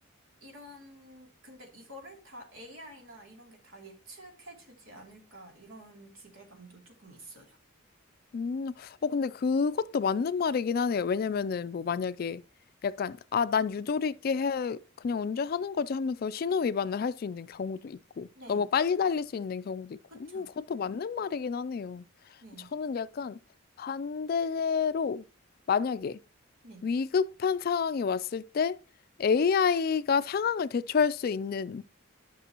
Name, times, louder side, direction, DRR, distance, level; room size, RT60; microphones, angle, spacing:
voice 1, 0.4-7.6 18.3-18.7 20.1-20.5 22.4-22.8 26.6-26.9, right 1 dB, 85° right, 2.8 m, -50 dB
voice 2, 8.3-12.4 12.8-14.8 15.0-22.0 22.7-23.4 23.8-25.2 25.7-26.2 26.8-28.8 29.2-31.8, left 6 dB, 45° left, 0.3 m, -29 dB
12.0 x 6.1 x 2.9 m
head